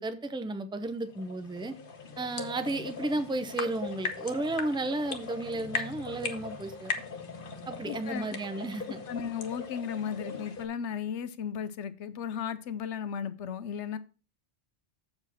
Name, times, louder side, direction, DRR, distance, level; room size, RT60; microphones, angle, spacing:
voice 1, 0.0-1.7 2.2-6.9 7.7-9.0, right 2 dB, 5° right, 0.4 m, -33 dB
sound 1, 0.8-10.7, left 4 dB, 45° left, 1.1 m, -39 dB
voice 2, 7.8-8.4 9.1-14.0, left 7 dB, 70° left, 1.0 m, -35 dB
7.6 x 4.9 x 5.6 m
omnidirectional pair, 1.3 m